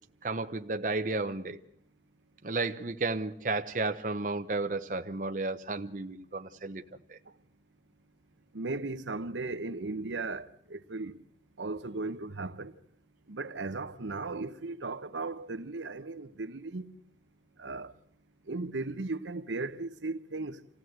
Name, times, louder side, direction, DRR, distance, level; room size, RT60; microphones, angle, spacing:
voice 1, 0.2-1.6 2.4-6.8 7.1-7.2, right 3 dB, 45° right, 0.8 m, -33 dB
voice 2, 8.5-11.2 11.6-12.8 13.3-17.0 17.6-17.9 18.5-20.6, right 3 dB, 85° right, 1.0 m, -36 dB
27.5 x 16.5 x 7.9 m
head